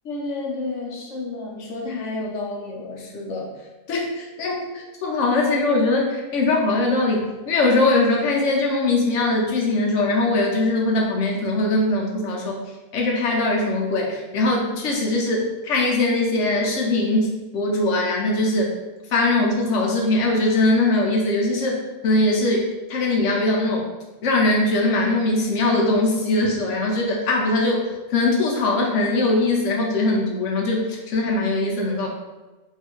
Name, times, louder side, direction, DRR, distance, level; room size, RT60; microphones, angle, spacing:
voice 1, 0.0-3.5 3.9-12.6 12.9-18.7 19.1-23.9 24.2-27.8 28.1-32.1, left 2 dB, 65° left, -1 dB, 0.9 m, -21 dB
3.1 x 2.7 x 2.9 m, 1.2 s
omnidirectional pair, 1.5 m